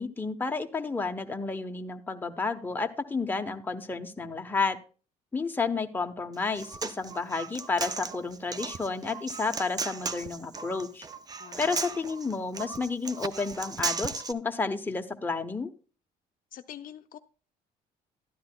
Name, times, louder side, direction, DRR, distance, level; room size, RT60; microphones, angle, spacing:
voice 1, 0.0-4.8 5.3-11.1 11.6-15.7, left 4 dB, 10° left, 4 dB, 0.8 m, -31 dB
Human voice, 6.3-14.3, right 4 dB, 25° right, 0.5 m, -36 dB
voice 2, 11.4-11.9 16.5-17.2, left 10 dB, 55° left, 9 dB, 0.5 m, -45 dB
12.5 x 10.0 x 2.2 m, 0.37 s
cardioid pair, 110°, 17 cm